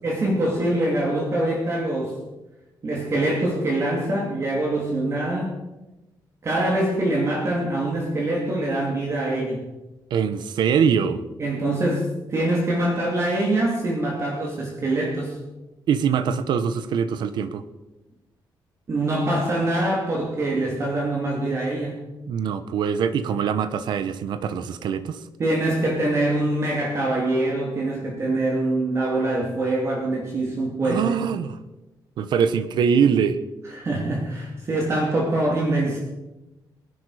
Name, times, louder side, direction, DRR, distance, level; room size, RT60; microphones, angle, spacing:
voice 1, 0.0-2.2 2.8-5.6 6.4-9.7 11.4-15.4 18.9-22.0 25.4-31.2 33.7-36.0, right 1 dB, 35° right, -1 dB, 2.8 m, -24 dB
voice 2, 10.1-11.2 15.9-17.6 22.3-25.2 30.8-31.6 32.2-33.4, right 7 dB, 75° right, 12 dB, 1.0 m, -23 dB
22.0 x 11.0 x 5.0 m, 1.0 s
cardioid pair, 150°, 8 cm